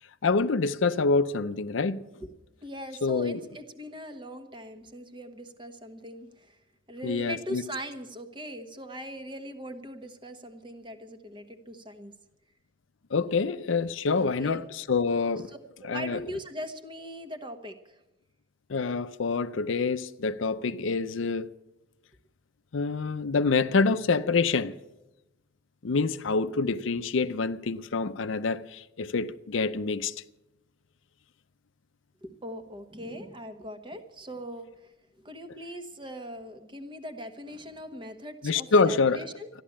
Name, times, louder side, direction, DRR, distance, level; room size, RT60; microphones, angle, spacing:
voice 1, 0.2-2.1 3.0-3.4 7.0-7.6 13.1-15.5 15.9-16.2 18.7-21.5 22.7-24.7 25.8-30.1 38.4-39.2, left 4 dB, 75° left, 0.6 m, -26 dB
voice 2, 2.6-6.6 6.9-12.1 14.1-14.6 15.5-18.0 32.2-39.5, equal, 25° right, 1.1 m, -41 dB
13.5 x 11.5 x 8.6 m
head